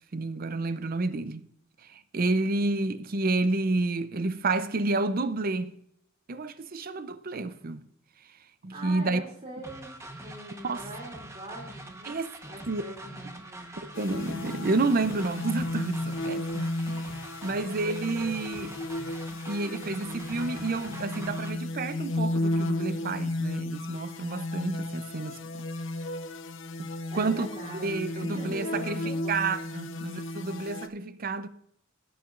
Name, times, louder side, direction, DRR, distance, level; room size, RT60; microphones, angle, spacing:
voice 1, 0.1-1.4 1.9-5.8 6.3-7.8 8.6-9.2 10.6-10.8 12.1-12.3 12.7-12.8 13.8-17.1 17.4-18.8 19.5-25.6 26.8-27.5 27.8-29.0 29.3-31.5, right 3 dB, 45° right, 0.6 m, -30 dB
voice 2, 8.7-12.2 12.5-13.7 27.1-29.4 29.8-29.9, right 1 dB, 30° right, 2.9 m, -43 dB
sound 1, 9.6-21.5, right 1 dB, 15° right, 1.0 m, -44 dB
sound 2, 13.9-30.9, left 1 dB, 65° left, 0.8 m, -34 dB
17.0 x 8.7 x 2.5 m
head